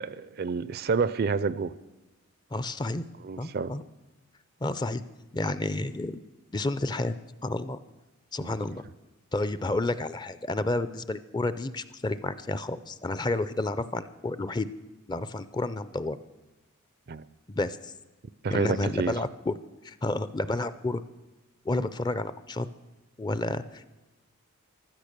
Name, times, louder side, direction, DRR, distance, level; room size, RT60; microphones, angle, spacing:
voice 1, 0.0-1.7 3.2-3.7 8.4-8.5 17.1-17.3 18.4-19.1, right 5 dB, 45° right, 17 dB, 0.4 m, -29 dB
voice 2, 2.5-3.0 3.4-3.8 4.6-5.0 5.3-6.2 6.5-7.2 7.4-7.8 8.3-8.8 9.3-14.7 15.1-16.2 17.5-17.9 18.5-19.6 19.8-21.0 21.6-22.7 23.2-23.9, left 2 dB, 20° left, 14 dB, 0.4 m, -30 dB
15.0 x 12.5 x 6.8 m, 1.1 s
head